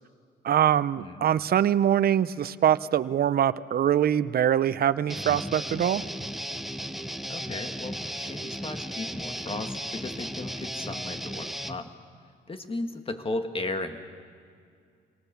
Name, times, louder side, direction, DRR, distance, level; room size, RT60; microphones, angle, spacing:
voice 1, 0.4-6.0, right 10 dB, 50° right, 15 dB, 0.6 m, -23 dB
Guitar, 5.1-11.8, equal, ahead, 0.9 m, -35 dB
voice 2, 7.3-11.9 12.5-14.0, left 2 dB, 30° left, 7 dB, 1.8 m, -35 dB
25.5 x 18.5 x 7.0 m, 2.3 s
cardioid pair, 90°, 20 cm